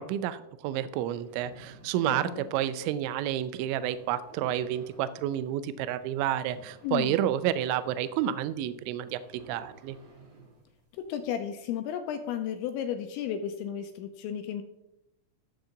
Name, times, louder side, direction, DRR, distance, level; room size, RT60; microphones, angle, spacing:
voice 1, 0.0-9.2 9.5-10.0, right 11 dB, 85° right, 14 dB, 2.7 m, -30 dB
sound 1, 1.0-11.4, right 2 dB, 50° right, 1.4 m, -54 dB
voice 2, 2.1-2.5 6.8-7.2 11.0-14.6, left 9 dB, 85° left, 6 dB, 2.8 m, -33 dB
14.5 x 7.1 x 3.9 m, 0.88 s
omnidirectional pair, 5.8 m